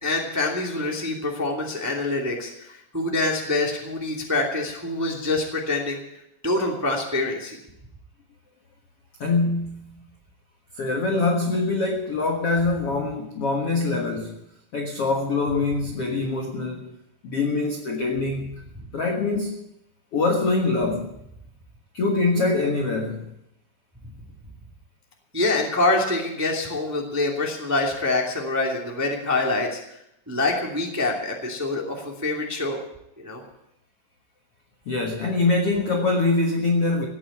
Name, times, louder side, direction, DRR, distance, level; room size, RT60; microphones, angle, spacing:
voice 1, 0.0-6.0 6.4-7.6 25.3-29.8 30.3-32.8 33.2-33.4, left 2 dB, 10° right, 0 dB, 1.0 m, -25 dB
voice 2, 9.2-9.8 10.7-14.4 14.7-16.9 17.2-18.6 18.9-19.6 20.1-21.1 21.9-23.3 34.8-37.1, left 3 dB, 85° left, 2 dB, 1.3 m, -24 dB
16.5 x 9.0 x 8.7 m, 0.80 s
omnidirectional pair, 5.2 m